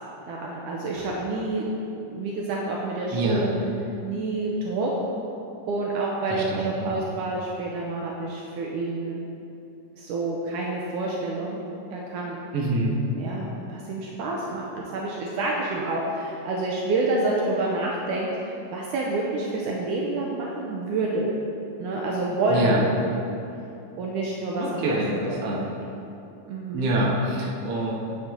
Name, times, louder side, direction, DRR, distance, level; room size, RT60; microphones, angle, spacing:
voice 1, 0.3-1.7 2.1-3.5 4.0-4.9 5.7-9.2 10.0-11.6 11.9-12.4 13.1-21.3 21.8-23.0 24.0-25.0 25.3-25.7 26.5-26.9, right 2 dB, 75° right, -3 dB, 2.2 m, -28 dB
voice 2, 3.1-3.5 6.3-7.0 12.5-13.0 22.5-22.8 24.6-25.6 26.7-27.9, right 1 dB, 55° right, -4 dB, 2.0 m, -26 dB
8.9 x 8.9 x 3.8 m, 2.7 s
omnidirectional pair, 3.9 m